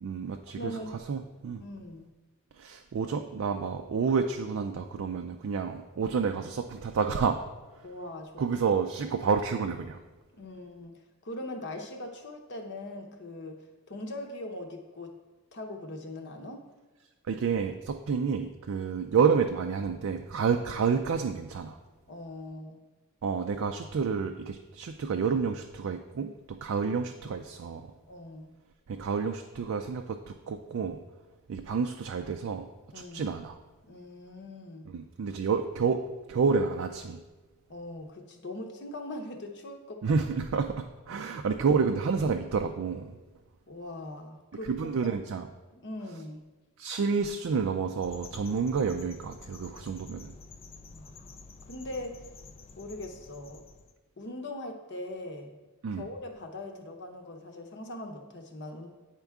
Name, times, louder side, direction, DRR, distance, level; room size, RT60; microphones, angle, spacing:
voice 1, 0.0-0.8 1.1-1.6 2.6-7.4 8.4-10.0 17.3-21.8 23.2-27.9 28.9-31.0 31.5-32.7 32.9-33.6 34.9-36.0 36.3-37.2 40.0-43.2 44.7-45.5 46.8-50.3 55.8-56.1, right 5 dB, 65° right, 5 dB, 0.4 m, -29 dB
voice 2, 0.5-1.0 1.6-2.1 7.8-8.4 8.7-8.8 10.3-13.6 13.9-15.2 15.5-16.7 20.5-20.6 22.1-22.8 28.1-28.5 32.9-33.4 33.8-34.9 37.7-40.0 41.1-41.3 43.7-44.7 45.7-46.4 50.9-51.3 51.7-52.2 52.8-53.6 54.2-55.5 55.9-58.9, left 1 dB, 50° left, 4 dB, 0.8 m, -41 dB
sound 1, 48.0-53.9, left 3 dB, 25° left, 0.3 m, -49 dB
9.0 x 4.5 x 3.5 m, 1.2 s
head